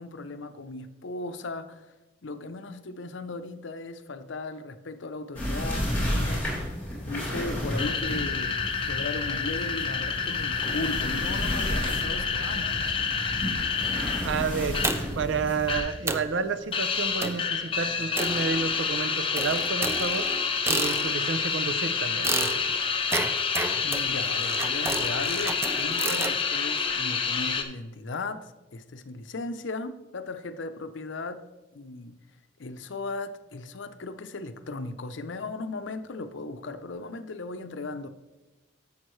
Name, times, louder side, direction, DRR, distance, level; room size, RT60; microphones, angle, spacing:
voice 1, 0.0-1.9 2.2-12.9 23.8-31.5 31.7-32.2 32.6-38.1, left 3 dB, 75° left, 0.6 m, -37 dB
sound 1, 5.3-15.8, equal, 10° left, 3.0 m, -32 dB
sound 2, 7.8-15.1 15.4-16.0 16.3-27.6, left 5 dB, 25° left, 0.6 m, -29 dB
voice 2, 14.2-20.3 20.7-22.7, right 5 dB, 70° right, 0.5 m, -30 dB
sound 3, 14.8-15.3 15.7-15.8 16.1-16.4 17.2-17.5 18.2-18.9 19.4-21.4 22.2-26.4, right 3 dB, 15° right, 0.4 m, -31 dB
11.0 x 7.3 x 3.1 m
head